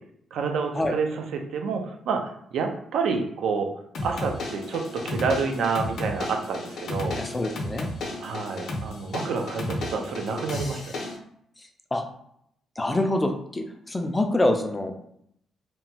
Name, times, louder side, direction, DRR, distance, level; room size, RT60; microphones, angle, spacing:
voice 1, 0.3-3.7 4.0-7.2 8.2-11.0, right 5 dB, 75° right, 4 dB, 0.4 m, -28 dB
sound 1, 3.9-11.2, left 1 dB, 60° left, 0.5 m, -33 dB
voice 2, 7.2-7.9 11.9-12.0 12.8-14.9, left 1 dB, 15° left, 4 dB, 0.3 m, -25 dB
2.9 x 2.2 x 2.7 m, 0.71 s
cardioid pair, 135°, 0 cm